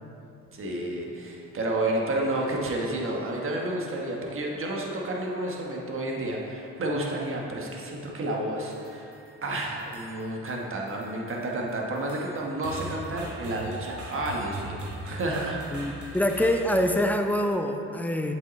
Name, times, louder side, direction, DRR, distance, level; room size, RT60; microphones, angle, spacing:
voice 1, 0.5-9.1 9.4-14.7 15.0-15.6 16.0-16.2, right 1 dB, 45° right, -1 dB, 1.3 m, -30 dB
sound 1, 8.6-9.4 9.8-10.6 10.9-17.0, right 1 dB, 75° right, 1.7 m, -41 dB
voice 2, 15.7-18.3, left 1 dB, 5° left, 5 dB, 0.5 m, -25 dB
8.0 x 5.4 x 4.1 m, 2.7 s
cardioid pair, 90°, 30 cm